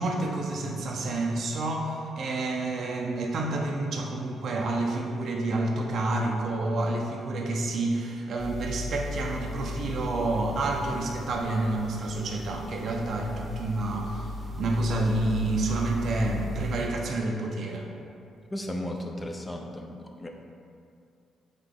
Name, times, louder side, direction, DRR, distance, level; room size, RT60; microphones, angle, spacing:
voice 1, 0.0-17.9, right 2 dB, 60° right, 1 dB, 0.5 m, -29 dB
sound 1, 8.4-16.9, left 1 dB, 10° right, 0.8 m, -37 dB
voice 2, 18.5-20.3, left 1 dB, 20° left, 2 dB, 0.5 m, -35 dB
3.7 x 3.6 x 3.5 m, 2.5 s
cardioid pair, 90°, 0 cm